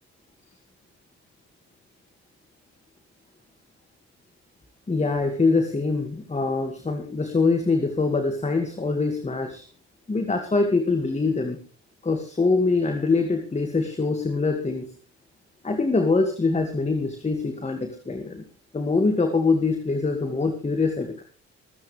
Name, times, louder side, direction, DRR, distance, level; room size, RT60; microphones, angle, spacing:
voice 1, 4.9-9.6 10.1-11.6 12.0-14.9 15.6-18.4 18.7-21.2, left 3 dB, 20° left, 5 dB, 2.2 m, -24 dB
25.5 x 9.2 x 3.4 m, 0.40 s
cardioid pair, 90°, 30 cm